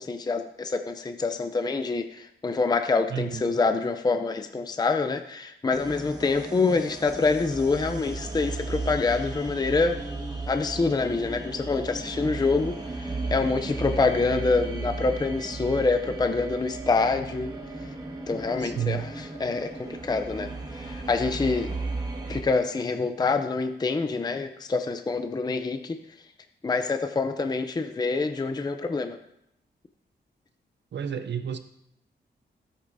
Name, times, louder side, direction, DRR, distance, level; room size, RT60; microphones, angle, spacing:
voice 1, 0.0-10.0 10.5-17.5 18.3-21.7 22.3-26.0 26.6-29.2, left 4 dB, 20° left, 7 dB, 0.5 m, -26 dB
voice 2, 3.1-3.5 18.6-19.0 30.9-31.6, right 8 dB, 75° right, 9 dB, 0.6 m, -31 dB
sound 1, 5.7-22.4, right 3 dB, 20° right, 1.4 m, -35 dB
15.5 x 8.1 x 2.6 m, 0.79 s
wide cardioid pair, 125°, 18 cm